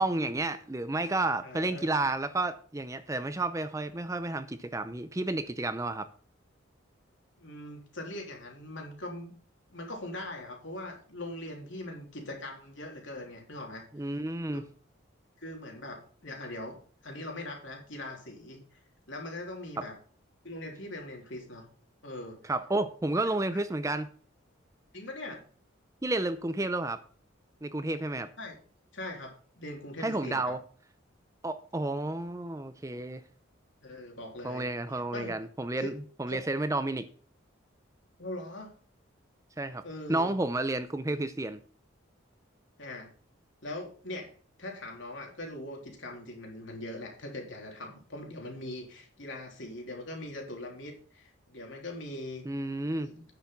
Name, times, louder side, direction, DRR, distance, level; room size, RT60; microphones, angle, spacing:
voice 1, 0.0-6.1 13.9-14.6 19.8-19.9 22.4-24.1 26.0-27.0 27.6-28.3 30.0-30.6 31.4-33.2 34.4-35.9 36.2-37.1 39.6-39.8 40.1-41.6 52.5-53.1, right 2 dB, 15° right, 0.5 m, -31 dB
voice 2, 1.4-1.9 7.4-9.3 9.7-13.8 15.4-18.8 19.1-20.0 20.4-21.7 22.0-22.4 23.1-23.2 24.9-25.4 28.4-28.5 28.9-30.5 33.8-35.4 35.8-35.9 36.3-36.4 38.2-38.7 39.8-40.3 42.8-43.1 43.6-44.3 44.6-52.4 53.0-53.2, left 1 dB, 65° left, 3.3 m, -41 dB
9.4 x 6.8 x 5.8 m
head